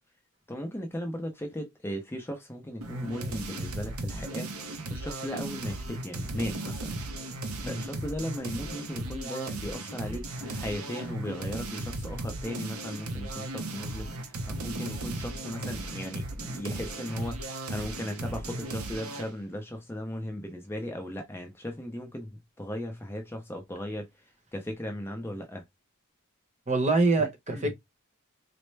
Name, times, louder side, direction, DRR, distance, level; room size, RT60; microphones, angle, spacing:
voice 1, 0.5-4.5 4.9-7.0 7.6-17.4 17.7-24.1 24.5-25.6 27.2-27.3 27.5-27.7, equal, 10° left, 0.5 m, -37 dB
sound 1, 2.8-19.3, right 2 dB, 75° right, 0.8 m, -36 dB
voice 2, 26.7-27.7, right 3 dB, 30° right, 0.9 m, -25 dB
4.2 x 2.1 x 3.2 m
head